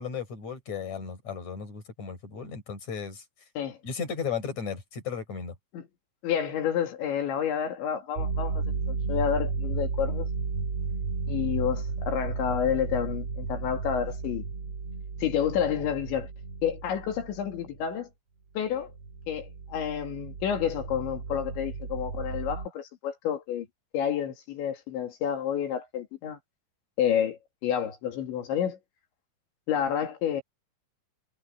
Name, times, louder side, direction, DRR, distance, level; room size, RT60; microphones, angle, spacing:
voice 1, 0.0-3.2 3.8-5.5, left 6 dB, 40° left, 5.2 m, -35 dB
voice 2, 6.2-10.3 11.3-14.5 15.2-16.3 16.6-18.1 18.6-18.9 19.3-23.7 23.9-26.4 27.0-28.8 29.7-30.4, left 9 dB, 70° left, 4.7 m, -29 dB
sound 1, 8.2-17.9 18.7-22.7, right 4 dB, 40° right, 2.1 m, -33 dB
omnidirectional pair, 5.6 m